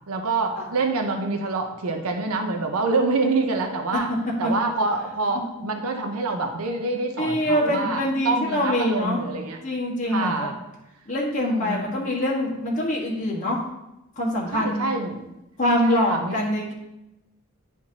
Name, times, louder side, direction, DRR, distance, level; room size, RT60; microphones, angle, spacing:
voice 1, 0.1-4.1 4.4-9.6 10.1-10.6 11.4-11.9 14.5-15.3 15.8-16.4, right 3 dB, 90° right, 4 dB, 0.7 m, -26 dB
voice 2, 7.2-9.2 9.6-10.5 11.1-13.6 14.1-14.9 15.6-16.7, left 1 dB, 35° left, -4 dB, 1.6 m, -24 dB
10.0 x 4.5 x 2.9 m, 0.92 s
head